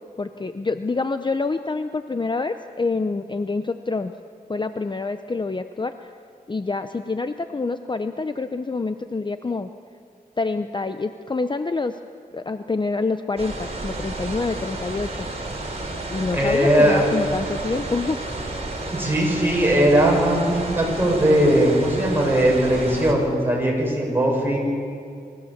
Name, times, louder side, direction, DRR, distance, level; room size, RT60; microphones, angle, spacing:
voice 1, 0.2-4.1 4.5-6.1 6.5-9.7 10.4-12.0 12.3-15.3 16.1-18.2, left 3 dB, 30° left, 9 dB, 0.6 m, -26 dB
sound 1, 13.4-23.1, right 2 dB, 45° right, 3.9 m, -31 dB
voice 2, 16.3-17.0 18.9-24.6, right 1 dB, 15° right, -2 dB, 7.1 m, -19 dB
26.5 x 16.0 x 7.3 m, 2.4 s
wide cardioid pair, 80°, 16 cm